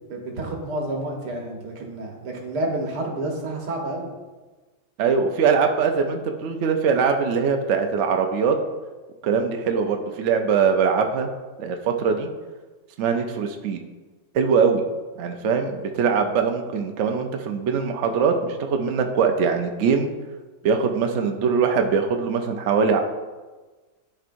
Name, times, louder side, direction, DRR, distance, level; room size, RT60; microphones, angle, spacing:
voice 1, 0.1-4.1, right 1 dB, 85° right, 0 dB, 1.8 m, -29 dB
voice 2, 5.0-8.6 9.2-11.3 11.6-12.3 13.0-13.8 14.3-14.8 15.2-20.1 20.6-23.0, right 6 dB, 60° right, 4 dB, 0.8 m, -22 dB
11.5 x 4.6 x 2.6 m, 1.3 s
omnidirectional pair, 1.7 m